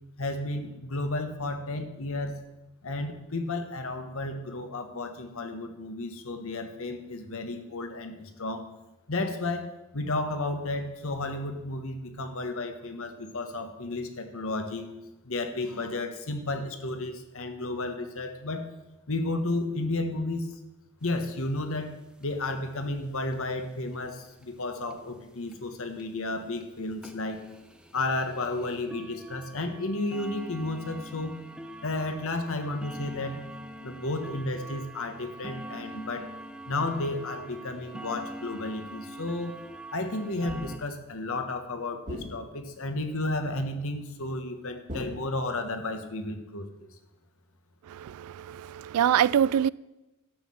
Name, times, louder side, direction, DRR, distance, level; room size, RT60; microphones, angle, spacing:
voice 1, 0.2-2.4 2.8-8.7 9.1-14.9 15.2-18.7 19.1-20.5 21.0-27.4 27.9-31.4 31.8-33.5 33.8-36.3 36.7-39.6 39.9-46.9, left 2 dB, 65° left, 1.4 m, -32 dB
sound 1, 21.1-21.2 21.4-21.5 21.7-21.9 22.2-22.6 23.3-23.4 23.9-24.0 24.4-24.5 24.9-25.0 25.5-25.6 26.0-26.2 26.6-26.7 27.0-40.8, right 1 dB, 5° right, 0.8 m, -44 dB
sound 2, 40.5-41.0 42.1-42.8 44.9-45.8, left 1 dB, 35° right, 1.8 m, -41 dB
voice 2, 47.9-49.7, right 9 dB, 75° right, 0.3 m, -25 dB
12.0 x 5.8 x 7.7 m
head